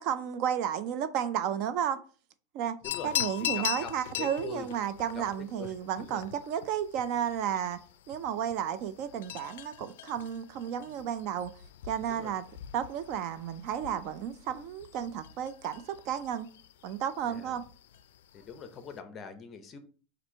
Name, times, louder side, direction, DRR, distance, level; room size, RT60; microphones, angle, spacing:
voice 1, 0.0-2.0 2.5-2.8 3.0-7.8 8.1-11.5 11.8-12.4 12.7-16.5 16.8-17.6, right 9 dB, 45° right, 0.4 m, -32 dB
sound 1, 2.8-19.0, left 12 dB, 80° left, 0.3 m, -41 dB
voice 2, 3.4-4.7 5.1-5.2 5.6-5.7 6.0-6.2 12.1-12.3 17.3-17.6 18.3-19.8, left 6 dB, 25° left, 0.6 m, -43 dB
4.4 x 2.5 x 4.4 m
supercardioid pair, 160°, 0 cm